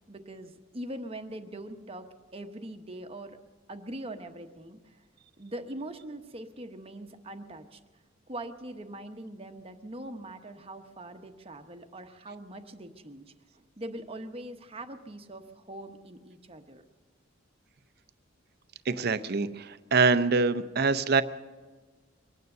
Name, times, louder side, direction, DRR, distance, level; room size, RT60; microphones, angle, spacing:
voice 1, 0.1-2.1 2.3-3.4 3.7-5.0 5.4-7.8 8.3-13.2 13.5-16.8, right 1 dB, 30° right, 7 dB, 0.9 m, -42 dB
voice 2, 18.9-21.2, right 4 dB, 50° right, 13 dB, 0.6 m, -25 dB
23.0 x 9.5 x 6.6 m, 1.4 s
head